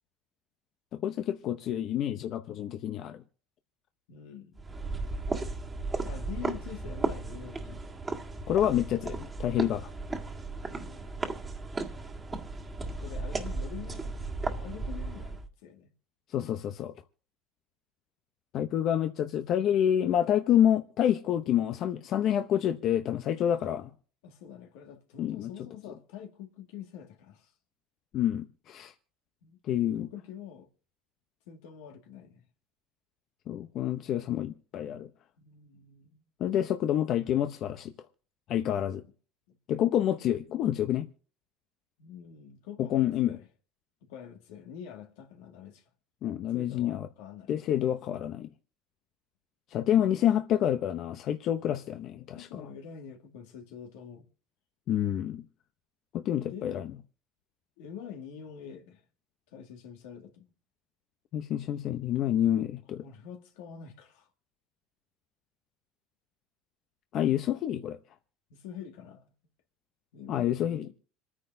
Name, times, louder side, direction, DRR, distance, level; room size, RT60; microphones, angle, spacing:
voice 1, 1.0-3.2 8.5-9.9 16.3-16.9 18.5-23.9 25.2-25.5 28.1-28.9 29.7-30.1 33.5-35.1 36.4-37.9 38.5-39.0 39.7-41.1 42.8-43.4 46.2-47.1 47.5-48.5 49.7-52.5 54.9-55.4 56.1-56.9 61.3-63.0 67.1-68.0 70.3-70.9, left 10 dB, 55° left, 0.8 m, -28 dB
voice 2, 4.1-4.6 6.0-7.8 10.7-11.1 13.0-14.2 14.6-15.9 24.2-27.5 29.4-29.6 29.9-30.7 31.5-32.4 35.4-36.2 39.5-39.6 42.0-43.5 44.1-45.8 46.5-47.5 49.9-50.0 52.3-54.3 56.5-56.8 57.8-59.0 59.5-60.5 63.0-64.3 68.5-69.3 70.1-70.9, left 8 dB, 85° left, 2.1 m, -46 dB
sound 1, 4.6-15.5, right 3 dB, 20° right, 1.7 m, -35 dB
27.0 x 9.8 x 2.7 m
supercardioid pair, 110°, 0 cm